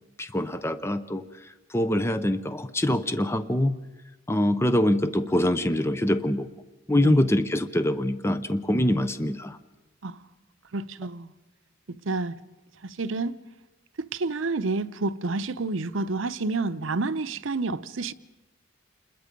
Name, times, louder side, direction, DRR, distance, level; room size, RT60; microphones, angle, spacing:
voice 1, 0.2-1.2 1.7-3.7 4.3-6.5 6.9-9.6, left 1 dB, 15° left, 0.7 m, -24 dB
voice 2, 10.7-11.3 11.9-12.4 12.8-13.4 14.1-18.1, right 3 dB, 80° right, 0.8 m, -29 dB
28.5 x 21.0 x 5.3 m
head